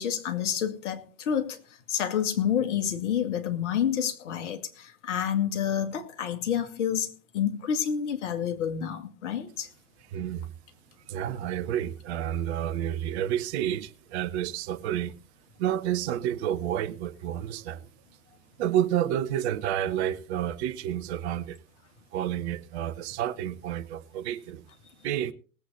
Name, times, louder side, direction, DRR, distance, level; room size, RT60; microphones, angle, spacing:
voice 1, 0.0-1.6 1.9-7.1 7.3-9.7, left 9 dB, 55° left, 2.2 m, -28 dB
voice 2, 10.1-10.5 11.1-15.2 15.6-17.9 18.6-21.6 22.1-24.6 25.0-25.3, right 11 dB, 50° right, 1.0 m, -30 dB
19.0 x 8.1 x 4.3 m
figure-of-eight pair, 85°, 42 cm